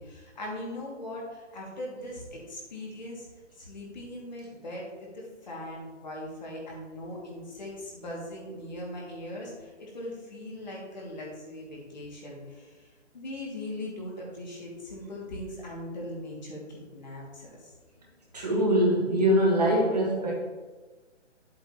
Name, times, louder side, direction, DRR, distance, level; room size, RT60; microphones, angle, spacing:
voice 1, 0.0-3.3 3.6-12.9 13.1-17.7, left 1 dB, 35° left, -3 dB, 2.3 m, -40 dB
voice 2, 18.3-20.4, equal, 35° right, -2 dB, 1.5 m, -23 dB
10.5 x 7.7 x 3.0 m, 1.3 s
hypercardioid pair, 180°, 37 cm